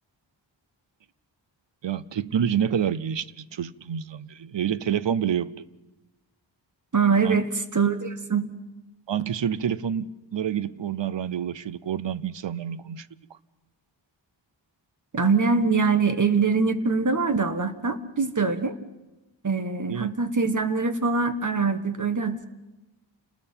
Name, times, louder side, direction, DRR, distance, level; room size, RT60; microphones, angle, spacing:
voice 1, 1.8-5.5 7.2-7.4 9.1-13.1 19.9-20.1, right 8 dB, 70° right, 0.8 m, -28 dB
voice 2, 6.9-8.5 15.1-18.7 19.4-22.5, right 4 dB, 40° right, 1.5 m, -23 dB
29.0 x 20.0 x 5.7 m
wide cardioid pair, 110°, 46 cm